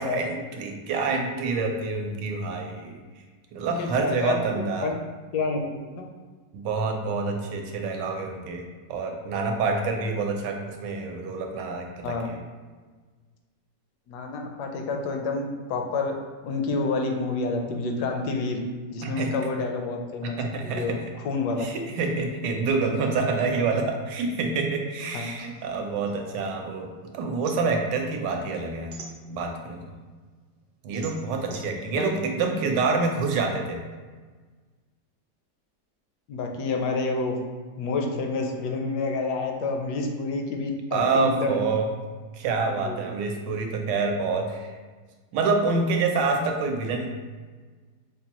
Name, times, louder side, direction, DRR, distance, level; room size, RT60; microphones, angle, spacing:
voice 1, 0.0-3.0 3.5-4.9 6.5-12.4 19.0-19.3 20.4-21.0 21.6-29.0 29.3-29.9 30.8-33.8 40.9-41.9 42.3-44.8 45.3-47.2, right 4 dB, 85° right, 3 dB, 1.2 m, -27 dB
voice 2, 3.8-4.4 4.8-4.9 5.3-5.6 6.0-6.1 12.0-12.3 14.1-16.1 16.4-18.6 18.9-20.4 20.6-21.7 25.1-25.3 32.0-32.1 32.4-32.5 36.3-37.4 37.8-41.6 42.6-43.0, left 3 dB, 75° left, 3 dB, 1.1 m, -28 dB
sound 1, 25.4-26.9 27.2-29.7 30.2-33.3, right 4 dB, 65° right, 1.0 m, -46 dB
5.4 x 2.2 x 2.9 m, 1.4 s
omnidirectional pair, 1.9 m